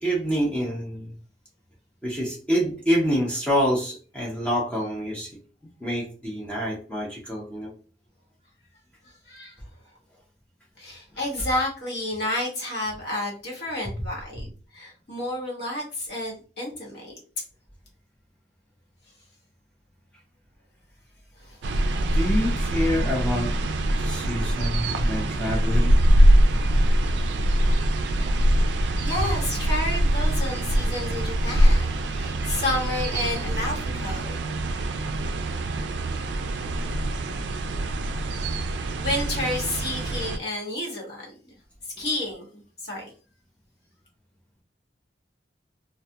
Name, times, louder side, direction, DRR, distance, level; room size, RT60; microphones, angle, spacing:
voice 1, 0.0-1.1 2.0-5.3 5.8-7.7 22.1-23.5 24.0-26.0, equal, 5° left, -4 dB, 0.5 m, -27 dB
voice 2, 10.8-17.2 21.4-21.6 27.0-27.1 29.0-34.4 39.0-41.5 42.0-43.1, left 1 dB, 60° left, -3 dB, 1.0 m, -31 dB
sound 1, 21.6-40.4, right 1 dB, 75° right, 0.3 m, -23 dB
2.3 x 2.1 x 2.7 m, 0.38 s
head